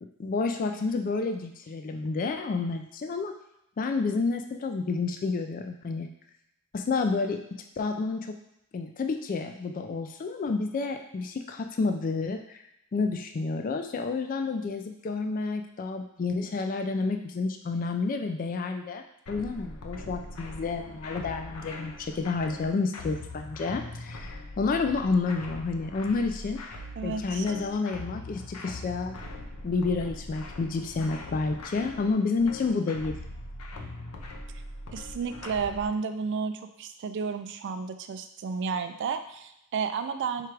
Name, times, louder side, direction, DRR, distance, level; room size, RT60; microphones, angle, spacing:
voice 1, 0.2-3.3 3.8-6.1 6.7-8.4 8.7-12.6 12.9-19.0 19.3-26.6 27.0-29.2 29.6-33.2, left 4 dB, 40° left, 5 dB, 0.3 m, -30 dB
sound 1, 19.3-35.9, left 2 dB, 80° left, 0.6 m, -41 dB
voice 2, 27.0-27.5 34.9-40.5, right 5 dB, 55° right, 9 dB, 0.3 m, -32 dB
4.5 x 2.4 x 4.6 m, 0.82 s
head